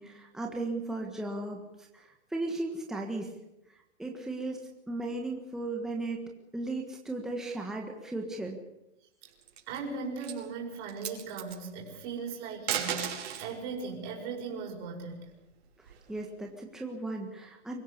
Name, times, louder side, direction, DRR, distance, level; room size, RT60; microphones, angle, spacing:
voice 1, 0.0-1.6 1.9-3.3 4.0-8.6 16.1-17.8, right 2 dB, ahead, 1 dB, 1.5 m, -36 dB
sound 1, 9.3-9.8 10.2-10.4 10.8-11.6 12.5-13.5 15.0-16.2, right 9 dB, 60° right, 5.3 m, -35 dB
voice 2, 9.7-15.3, right 4 dB, 30° right, -1 dB, 5.7 m, -38 dB
24.0 x 16.0 x 8.5 m, 0.90 s
hypercardioid pair, 160°, 35 cm